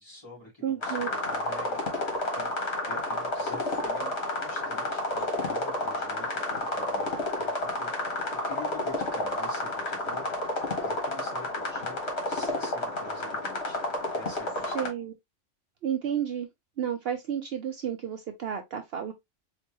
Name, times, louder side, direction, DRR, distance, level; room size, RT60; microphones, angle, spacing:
voice 1, 0.0-1.8 2.3-13.8 14.1-15.1, left 2 dB, 20° left, 2.3 m, -46 dB
voice 2, 0.6-1.1 14.7-15.1 15.8-16.5 16.8-19.1, right 9 dB, 65° right, 0.8 m, -31 dB
sound 1, 0.8-14.9, left 2 dB, 60° left, 1.7 m, -31 dB
4.3 x 2.9 x 3.0 m
omnidirectional pair, 1.2 m